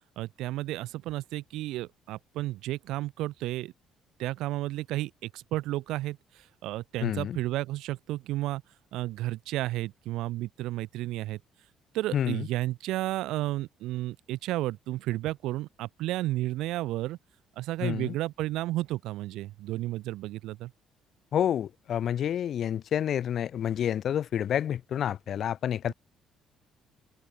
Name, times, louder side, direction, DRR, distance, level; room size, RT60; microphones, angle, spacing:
voice 1, 0.2-3.7 4.2-6.2 6.6-8.6 8.9-11.4 11.9-17.2 17.6-20.7, right 16 dB, 85° right, 6.1 m, -32 dB
voice 2, 7.0-7.4 12.1-12.5 17.8-18.1 21.3-25.9, left 9 dB, 45° left, 5.2 m, -29 dB
open air
cardioid pair, 175°, 0 cm